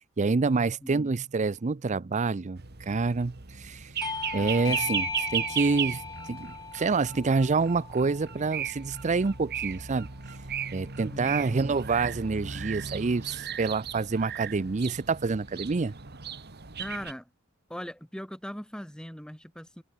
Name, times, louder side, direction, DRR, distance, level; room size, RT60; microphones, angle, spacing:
voice 1, 0.2-3.9 4.3-6.0 6.3-10.1 10.7-15.9, right 4 dB, 35° right, 0.5 m, -27 dB
voice 2, 0.8-1.1 4.4-5.0 11.0-11.8 16.8-17.3 17.7-19.8, equal, 5° left, 1.9 m, -40 dB
sound 1, 2.6-17.1, right 8 dB, 50° right, 1.8 m, -36 dB
Bell / Doorbell, 4.0-9.1, left 5 dB, 20° left, 0.5 m, -37 dB
head